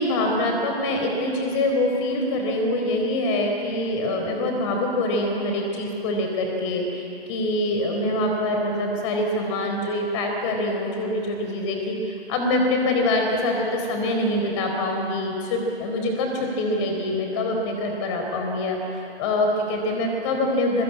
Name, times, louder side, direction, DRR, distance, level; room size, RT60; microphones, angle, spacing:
voice 1, 0.0-20.8, left 1 dB, 30° left, 2 dB, 4.2 m, -25 dB
26.5 x 23.0 x 8.7 m, 2.8 s
figure-of-eight pair, 130°, 32 cm